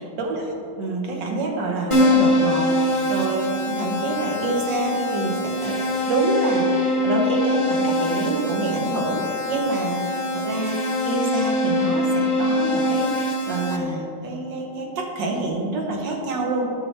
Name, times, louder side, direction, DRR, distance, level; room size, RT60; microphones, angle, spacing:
voice 1, 0.2-5.8 6.1-10.8 11.1-16.7, right 2 dB, 85° right, 1 dB, 1.8 m, -27 dB
Keyboard (musical), 1.9-13.8, left 1 dB, 30° left, 0.5 m, -23 dB
10.5 x 6.6 x 3.3 m, 2.9 s
omnidirectional pair, 1.9 m